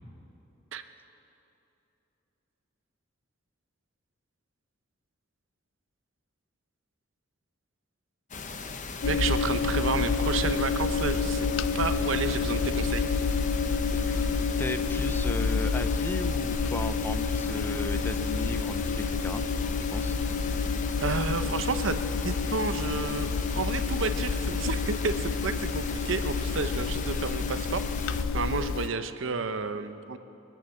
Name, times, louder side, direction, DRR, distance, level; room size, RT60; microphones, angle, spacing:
sound 1, 8.3-28.2, left 4 dB, 40° left, 0.9 m, -38 dB
sound 2, 9.0-28.9, left 5 dB, 80° left, 0.4 m, -29 dB
voice 1, 9.0-11.5 11.7-13.1 21.0-30.2, right 4 dB, 75° right, 10 dB, 0.8 m, -31 dB
voice 2, 14.0-14.3 14.6-19.4 19.8-20.2, left 1 dB, 10° left, 11 dB, 0.4 m, -36 dB
23.0 x 9.0 x 7.0 m, 2.9 s
head